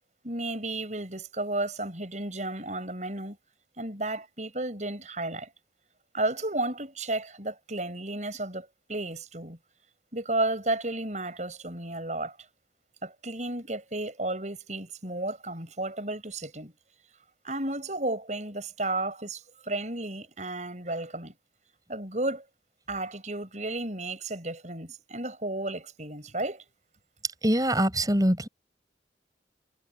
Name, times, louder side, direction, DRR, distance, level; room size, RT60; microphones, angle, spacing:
voice 1, 0.2-3.4 3.8-5.5 6.1-9.6 10.1-12.4 13.0-16.7 17.4-21.4 21.9-22.4 22.9-26.6, right 2 dB, 40° right, 7.2 m, -33 dB
voice 2, 27.4-28.5, right 1 dB, 20° right, 6.1 m, -23 dB
head